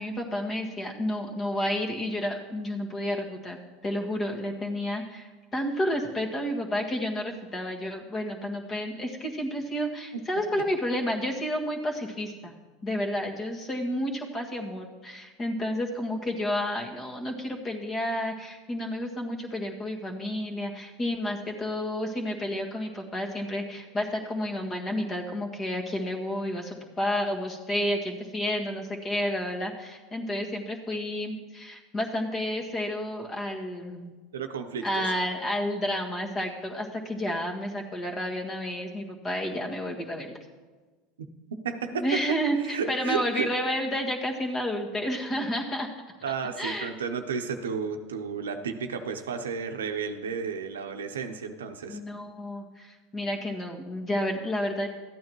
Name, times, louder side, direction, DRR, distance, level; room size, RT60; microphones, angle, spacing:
voice 1, 0.0-12.5 12.8-34.1 34.8-40.3 41.9-45.9 46.6-46.9 51.9-54.9, equal, 30° left, 2 dB, 1.7 m, -31 dB
voice 2, 34.3-35.1 41.6-42.2 42.5-43.5 46.2-52.0, right 6 dB, 90° right, 7 dB, 0.7 m, -32 dB
14.0 x 9.3 x 3.1 m, 1.3 s
hypercardioid pair, 90°, 0 cm